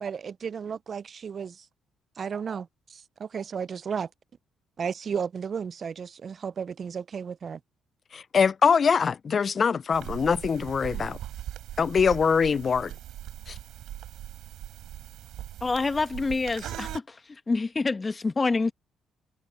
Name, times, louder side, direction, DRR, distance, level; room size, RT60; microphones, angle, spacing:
voice 1, 0.0-1.7 2.2-4.1 4.8-7.6, right 6 dB, 50° right, 0.5 m, -34 dB
voice 2, 8.1-11.2 11.8-12.9 13.5-13.6, left 6 dB, 45° left, 0.4 m, -23 dB
sound 1, 9.9-17.0, right 13 dB, 75° right, 4.7 m, -40 dB
voice 3, 15.6-17.2 17.5-18.7, left 3 dB, 30° left, 1.1 m, -27 dB
supercardioid pair, 65°, 0 cm